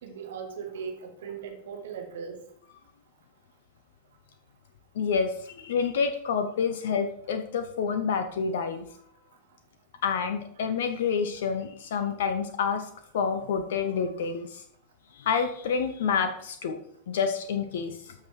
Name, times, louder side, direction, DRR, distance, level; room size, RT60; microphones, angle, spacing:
voice 1, 0.0-2.4, right 6 dB, 60° right, 3 dB, 2.2 m, -38 dB
voice 2, 4.9-8.8 10.0-12.9 13.1-14.6 15.1-16.8 17.1-18.1, left 6 dB, 60° left, 9 dB, 0.9 m, -28 dB
13.5 x 5.9 x 4.8 m, 0.67 s
figure-of-eight pair, 90°, 0 cm